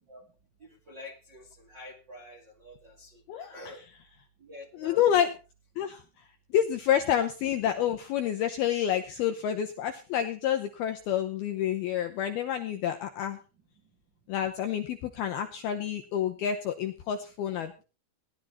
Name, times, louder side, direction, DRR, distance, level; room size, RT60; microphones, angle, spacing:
voice 1, 0.6-3.8 4.4-5.0, left 2 dB, 45° right, 0 dB, 1.4 m, -47 dB
voice 2, 3.3-3.8 4.7-5.3 5.8-6.0 6.5-13.4 14.3-17.8, left 10 dB, 80° left, 5 dB, 2.3 m, -28 dB
18.0 x 11.0 x 4.2 m, 0.34 s
omnidirectional pair, 5.5 m